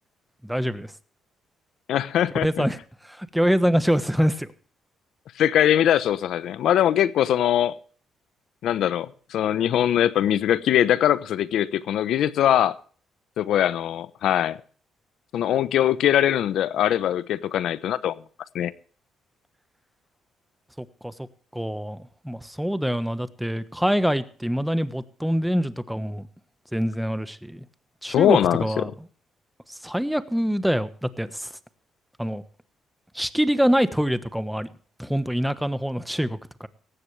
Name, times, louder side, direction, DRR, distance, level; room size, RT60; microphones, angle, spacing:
voice 1, 0.4-0.9 2.4-2.8 3.0-4.5 20.8-21.1 21.5-26.3 26.7-27.6 28.0-28.9 29.7-31.5 32.2-32.4 33.1-34.7 35.0-36.7, equal, ahead, 1.2 m, -25 dB
voice 2, 1.9-2.7 5.4-7.8 8.6-12.8 13.4-14.6 15.3-18.2 18.5-18.7 28.1-28.8, left 11 dB, 75° left, 0.9 m, -22 dB
18.0 x 15.0 x 3.3 m
cardioid pair, 90°, 0 cm